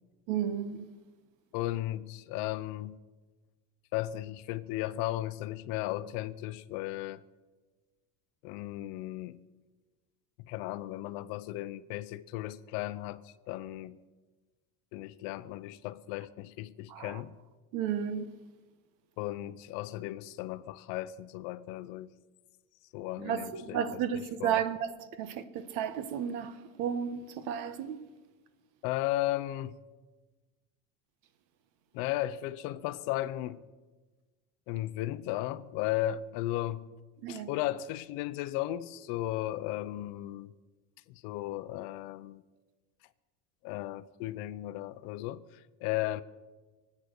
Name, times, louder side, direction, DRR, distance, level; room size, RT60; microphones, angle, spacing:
voice 1, 0.3-0.9 16.9-17.2 17.7-18.3 23.2-28.0 37.2-37.5, right 8 dB, 55° right, 1.1 m, -33 dB
voice 2, 1.5-3.0 3.9-7.2 8.4-9.4 10.4-14.0 14.9-17.3 19.2-22.1 22.9-24.6 28.8-29.8 31.9-33.6 34.7-36.8 37.3-40.5 41.1-42.4 43.6-46.2, left 15 dB, 60° left, 0.7 m, -35 dB
23.5 x 8.5 x 6.6 m
cardioid pair, 180°, 40 cm